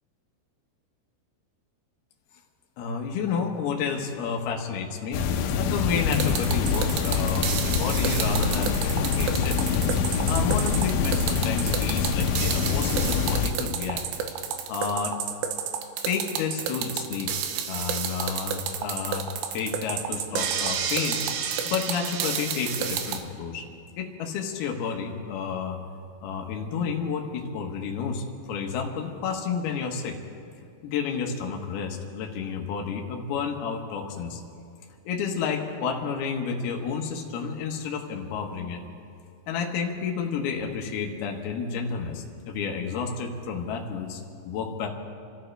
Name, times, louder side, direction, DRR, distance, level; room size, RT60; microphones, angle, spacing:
voice 1, 2.8-5.2 5.5-9.6 10.2-14.0 14.7-15.1 16.1-17.3 17.7-19.3 19.5-21.2 21.6-23.6 24.0-25.8 26.2-30.2 30.8-34.4 35.1-38.8 39.5-44.9, left 6 dB, 65° left, 1 dB, 2.8 m, -30 dB
sound 1, 5.1-13.5, left 6 dB, 85° left, 3.3 m, -25 dB
sound 2, 6.1-23.2, right 8 dB, 75° right, 2.9 m, -30 dB
29.5 x 13.0 x 3.4 m, 2.4 s
omnidirectional pair, 5.7 m